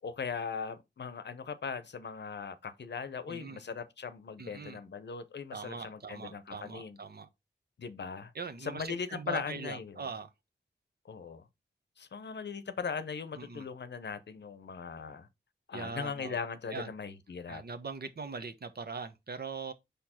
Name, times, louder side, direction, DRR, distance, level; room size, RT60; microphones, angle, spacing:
voice 1, 0.0-7.0 7.8-8.3 8.6-10.1 11.0-11.4 12.0-15.3 15.7-17.6, left 5 dB, 70° left, 0.8 m, -39 dB
voice 2, 3.3-3.6 4.4-4.8 5.5-7.3 8.3-10.3 13.4-13.7 15.7-16.4 16.7-16.9 17.5-19.7, right 4 dB, 60° right, 1.0 m, -41 dB
5.1 x 4.5 x 4.3 m
cardioid pair, 40°, 19 cm